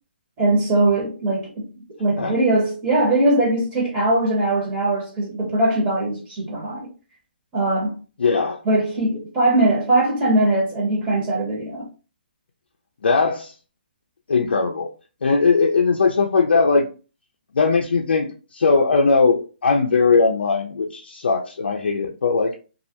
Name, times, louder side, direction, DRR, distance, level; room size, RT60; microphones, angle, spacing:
voice 1, 0.4-1.6 2.0-6.9 7.5-8.0 8.6-11.9, right 2 dB, 30° right, 0.9 m, -20 dB
voice 2, 8.2-8.6 13.0-13.5 14.3-14.9 15.2-16.9 17.5-18.3 18.5-22.5, left 4 dB, 75° left, 0.4 m, -19 dB
2.3 x 2.0 x 2.7 m
hypercardioid pair, 140°, 6 cm